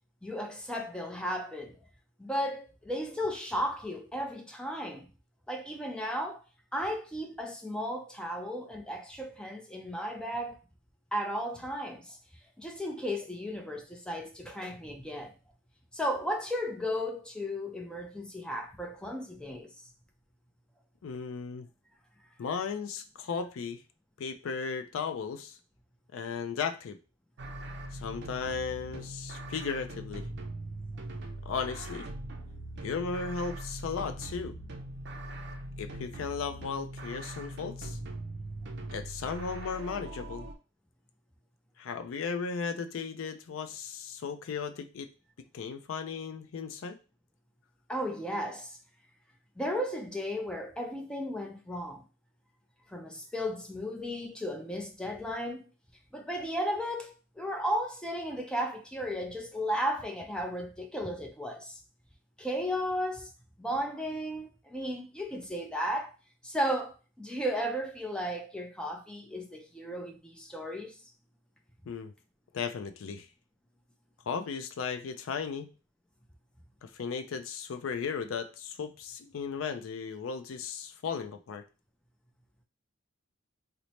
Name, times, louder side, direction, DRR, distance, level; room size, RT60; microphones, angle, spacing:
voice 1, 0.2-1.8 2.2-5.1 5.5-6.4 6.7-10.6 11.1-12.2 12.6-15.3 15.9-19.8 47.9-48.8 49.6-52.0 52.9-55.7 56.1-61.8 62.4-63.3 63.6-66.2 66.4-71.0, equal, 5° left, 0.4 m, -34 dB
voice 2, 21.0-21.7 22.4-23.8 24.2-25.6 26.1-27.0 27.9-30.3 31.5-32.1 32.8-34.5 35.8-38.0 38.9-40.5 41.8-45.1 45.5-47.0 71.9-72.1 72.5-73.3 74.3-75.7 76.8-81.6, left 5 dB, 80° left, 0.4 m, -36 dB
sound 1, 27.4-40.5, right 1 dB, 55° right, 0.5 m, -41 dB
3.1 x 2.0 x 4.0 m
head